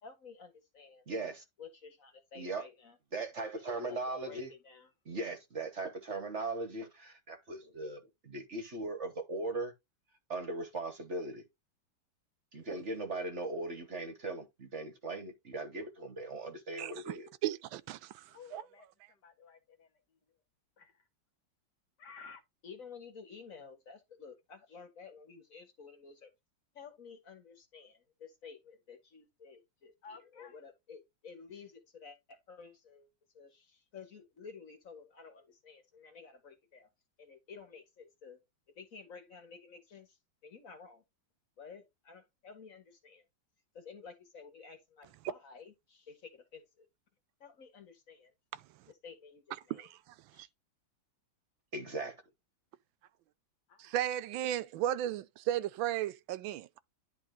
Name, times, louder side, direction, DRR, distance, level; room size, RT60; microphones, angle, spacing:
voice 1, 0.0-1.0 1.6-3.0 3.6-4.9 22.6-26.3 26.8-33.1 33.3-36.9 37.2-38.4 38.8-40.2 40.4-41.0 41.6-43.2 43.7-46.9 47.4-48.3 48.9-49.9 50.3-50.5, left 5 dB, 45° left, 1.8 m, -52 dB
voice 2, 1.1-1.4 2.3-2.7 3.1-4.5 5.0-9.7 10.3-11.4 12.5-17.3 51.7-52.2, right 2 dB, 40° right, 1.3 m, -39 dB
voice 3, 16.8-17.2 17.4-18.6 48.5-48.6 49.7-50.5 53.8-56.8, right 12 dB, 85° right, 1.4 m, -35 dB
voice 4, 18.3-20.2 20.8-21.1 22.0-22.4 30.0-30.6 53.7-54.1, left 5 dB, 60° left, 1.7 m, -54 dB
10.5 x 3.6 x 3.7 m
omnidirectional pair, 2.1 m